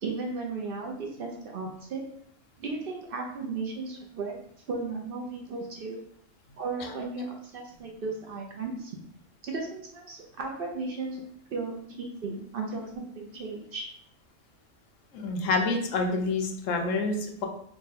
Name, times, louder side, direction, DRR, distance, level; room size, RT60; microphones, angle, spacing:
voice 1, 0.0-2.0 2.6-4.4 4.7-6.0 6.6-9.0 9.4-11.2 11.5-13.9, right 3 dB, 60° right, 1 dB, 0.6 m, -35 dB
voice 2, 15.1-17.5, left 3 dB, 90° left, 3 dB, 1.0 m, -28 dB
3.5 x 2.2 x 4.0 m, 0.68 s
omnidirectional pair, 1.3 m